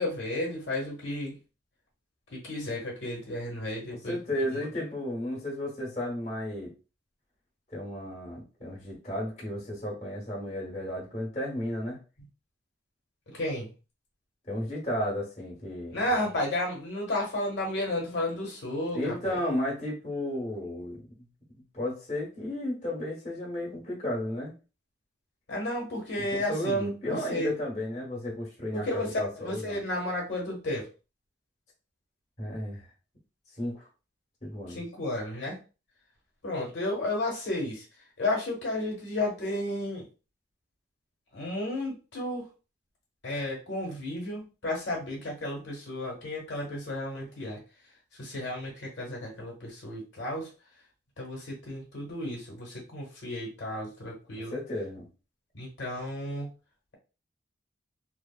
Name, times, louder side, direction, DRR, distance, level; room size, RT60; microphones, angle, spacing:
voice 1, 0.0-1.4 2.3-4.7 13.3-13.7 15.9-19.4 25.5-27.6 28.7-30.9 34.7-35.6 36.4-37.9 38.2-40.1 41.3-42.5 43.2-47.6 48.1-50.5 51.2-54.6 55.5-56.5, left 1 dB, 85° left, -2 dB, 1.1 m, -33 dB
voice 2, 3.9-6.7 7.7-12.0 14.5-16.2 18.9-21.3 21.7-24.5 26.2-29.8 32.4-32.8 33.6-33.9 34.4-34.8 54.5-55.1, left 1 dB, 40° left, -3 dB, 1.2 m, -33 dB
3.2 x 2.1 x 2.3 m, 0.32 s
head